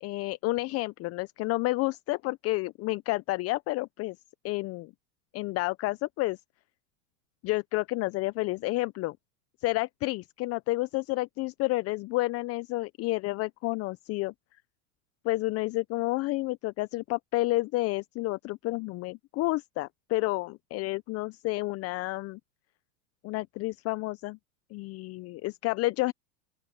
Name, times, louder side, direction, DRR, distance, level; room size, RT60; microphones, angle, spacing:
voice 1, 0.0-4.2 4.4-4.9 5.3-6.4 7.4-9.2 9.6-14.3 15.2-22.4 23.2-24.4 24.7-26.1, left 20 dB, 35° left, 0.7 m, -30 dB
open air
hypercardioid pair, 110°, 43 cm